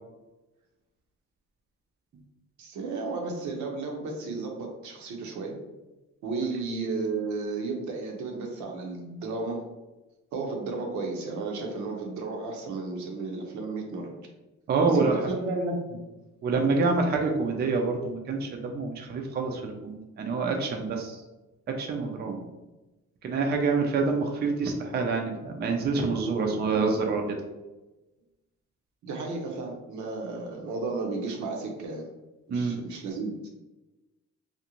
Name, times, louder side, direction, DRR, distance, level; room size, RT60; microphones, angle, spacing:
voice 1, 2.6-5.6 6.2-9.7 10.3-14.2 14.8-16.0 22.2-22.5 29.0-32.0 32.5-33.3, right 3 dB, 75° right, 1 dB, 0.7 m, -33 dB
voice 2, 14.7-15.1 16.4-21.2 21.7-22.4 23.2-27.4 32.5-32.8, right 4 dB, 35° right, 2 dB, 0.4 m, -27 dB
2.5 x 2.0 x 2.9 m, 1.1 s
cardioid pair, 90°, 30 cm